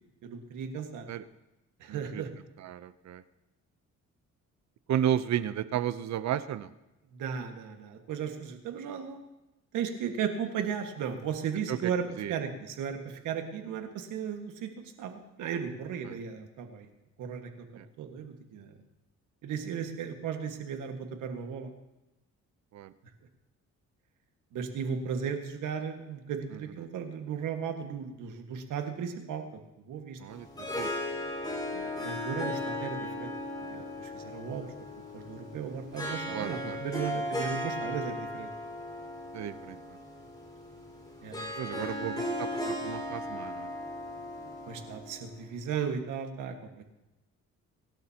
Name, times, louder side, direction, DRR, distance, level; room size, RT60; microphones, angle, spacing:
voice 1, 0.2-1.1 1.8-2.3 7.1-9.2 9.7-12.0 12.3-16.9 17.2-18.7 19.4-21.7 24.5-29.4 29.9-30.2 31.7-33.3 33.7-34.7 35.1-38.5 41.2-42.1 44.4-46.8, right 7 dB, 85° right, 5 dB, 1.8 m, -36 dB
voice 2, 1.9-2.2 2.6-3.2 4.9-6.7 11.7-11.9 12.2-12.3 16.1-16.2 17.8-17.9 22.7-22.9 26.5-26.6 30.2-30.5 30.8-30.9 36.3-36.8 39.3-40.0 41.6-43.7, right 10 dB, 65° right, 14 dB, 0.7 m, -33 dB
Harp, 30.3-45.6, left 1 dB, 15° left, 4.9 m, -37 dB
24.0 x 12.0 x 2.9 m, 0.99 s
cardioid pair, 90°, 30 cm